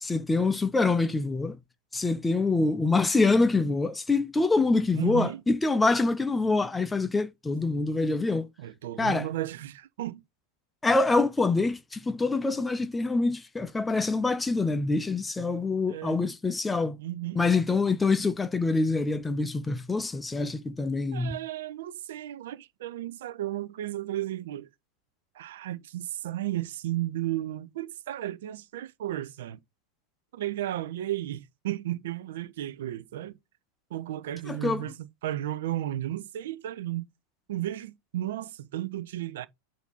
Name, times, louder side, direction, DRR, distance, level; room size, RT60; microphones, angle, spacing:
voice 1, 0.0-1.6 1.9-8.5 9.0-9.3 10.8-17.0 17.3-21.4 34.5-34.8, left 3 dB, 10° left, 0.5 m, -25 dB
voice 2, 4.9-5.4 8.6-10.2 15.9-16.2 17.0-17.4 21.1-24.7 25.3-29.6 30.3-33.3 33.9-37.0 37.5-39.5, right 14 dB, 55° right, 0.6 m, -34 dB
8.1 x 2.8 x 5.3 m
figure-of-eight pair, 90°, 0 cm